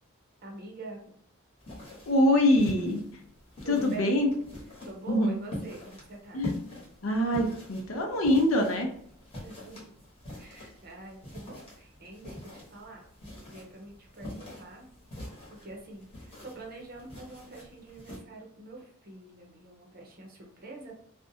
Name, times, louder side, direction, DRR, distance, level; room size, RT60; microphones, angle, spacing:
voice 1, 0.4-1.1 3.6-4.1 4.8-6.4 9.4-10.0 10.4-13.0 13.3-14.9 15.5-20.9, right 2 dB, 45° right, 0 dB, 0.6 m, -45 dB
sound 1, 1.6-18.2, left 1 dB, 25° left, 1.0 m, -44 dB
voice 2, 2.1-3.0 3.7-4.3 5.1-5.4 6.3-6.7 7.0-8.9, left 1 dB, 65° left, 4 dB, 0.5 m, -24 dB
2.5 x 2.1 x 2.7 m, 0.66 s
head